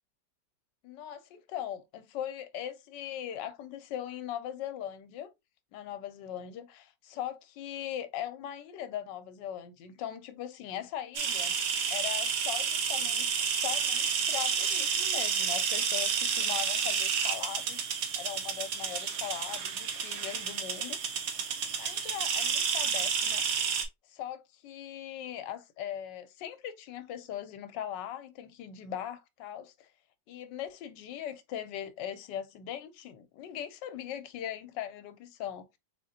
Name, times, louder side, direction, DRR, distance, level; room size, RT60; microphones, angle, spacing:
voice 1, 0.8-5.3 5.7-11.6 11.9-17.8 18.2-21.0 21.8-23.4 24.1-29.9 30.3-35.7, left 10 dB, 85° left, 1.3 m, -40 dB
sound 1, 11.1-23.8, right 6 dB, 60° right, 1.1 m, -30 dB
3.8 x 3.4 x 2.7 m
omnidirectional pair, 1.9 m